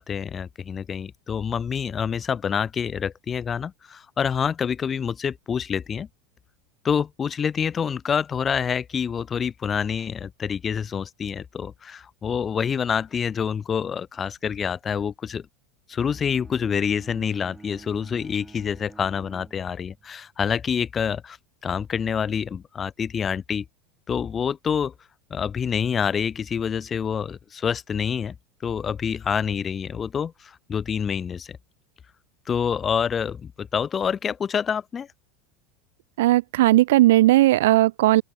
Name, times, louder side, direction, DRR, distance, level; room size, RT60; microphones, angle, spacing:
voice 1, 0.0-6.1 6.8-15.5 15.9-21.4 21.6-23.6 24.1-24.9 25.3-28.3 28.6-31.6 32.5-35.1, left 7 dB, 25° left, 1.2 m, -27 dB
Bowed string instrument, 16.0-20.2, right 3 dB, 10° right, 7.7 m, -48 dB
voice 2, 36.2-38.2, right 16 dB, 80° right, 0.4 m, -17 dB
open air
supercardioid pair, 115°, 0 cm